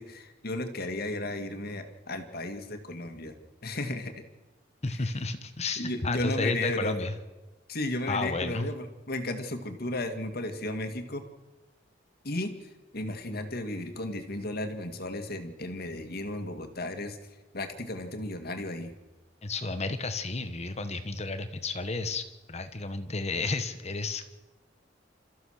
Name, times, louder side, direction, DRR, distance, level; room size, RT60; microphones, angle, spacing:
voice 1, 0.0-3.4 3.6-4.1 4.9-5.0 5.8-7.1 7.7-11.3 12.2-12.5 12.9-17.2 17.5-18.9, left 1 dB, 55° left, 7 dB, 2.1 m, -34 dB
voice 2, 4.8-7.1 8.1-8.7 19.4-24.3, left 3 dB, 35° left, 10 dB, 1.3 m, -32 dB
28.5 x 14.0 x 6.6 m, 1.2 s
head